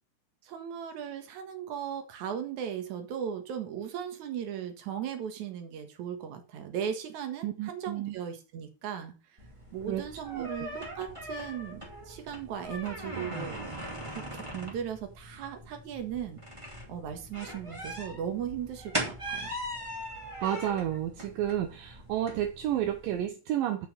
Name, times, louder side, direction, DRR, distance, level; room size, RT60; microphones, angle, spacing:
voice 1, 0.4-9.2 9.7-13.6 14.1-16.4 16.9-19.5, right 8 dB, 55° right, 6 dB, 2.5 m, -37 dB
voice 2, 7.4-8.2 9.9-10.1 20.4-23.9, right 11 dB, 75° right, 6 dB, 2.2 m, -31 dB
sound 1, 9.4-23.2, right 1 dB, 10° right, 1.7 m, -40 dB
9.2 x 5.7 x 6.8 m, 0.34 s
omnidirectional pair, 4.8 m